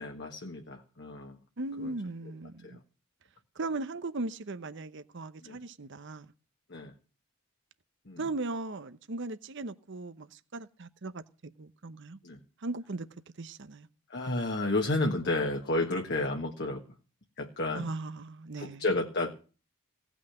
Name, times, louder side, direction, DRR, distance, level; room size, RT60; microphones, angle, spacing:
voice 1, 0.0-1.4 1.8-1.9 2.6-2.8 5.4-5.6 6.7-6.9 8.0-8.2 12.2-12.4 14.1-16.8 17.4-17.9 18.6-19.3, left 2 dB, 55° left, 1.6 m, -31 dB
voice 2, 1.6-2.8 3.6-6.3 8.2-11.2 11.6-12.2 12.6-13.1 13.4-13.9 17.8-18.8, right 2 dB, 55° right, 0.8 m, -38 dB
17.5 x 6.1 x 10.0 m
head